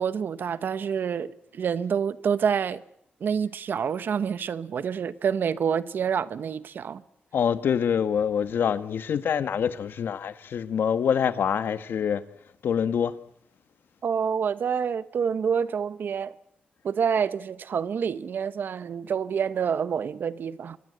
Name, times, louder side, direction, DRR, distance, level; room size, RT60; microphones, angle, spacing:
voice 1, 0.0-2.8 3.2-7.0 14.0-16.3 16.8-20.8, right 7 dB, 70° right, 1.0 m, -27 dB
voice 2, 7.3-12.2 12.6-13.2, left 7 dB, 90° left, 1.2 m, -25 dB
24.0 x 21.0 x 7.9 m
wide cardioid pair, 140°, 4 cm